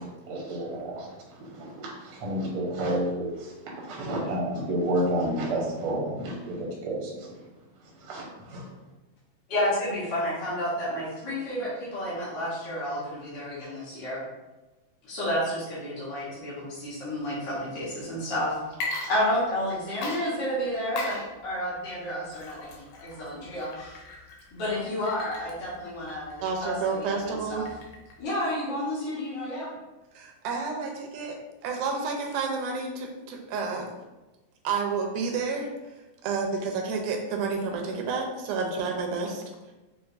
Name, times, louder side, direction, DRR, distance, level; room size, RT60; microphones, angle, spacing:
voice 1, 0.0-7.3 8.0-8.7, right 1 dB, 65° right, -3 dB, 1.4 m, -31 dB
voice 2, 9.5-14.2 15.0-18.6 19.1-22.8 23.0-24.0 24.5-27.6 28.2-29.7, left 1 dB, 70° left, -9 dB, 1.0 m, -31 dB
Water / Liquid, 18.7-19.7 20.0-28.2, left 3 dB, 90° left, 2.3 m, -39 dB
voice 3, 26.4-27.7 30.1-31.4 31.6-33.9 34.6-39.7, right 4 dB, 85° right, 1 dB, 2.1 m, -30 dB
6.2 x 2.6 x 2.5 m, 1.1 s
omnidirectional pair, 3.7 m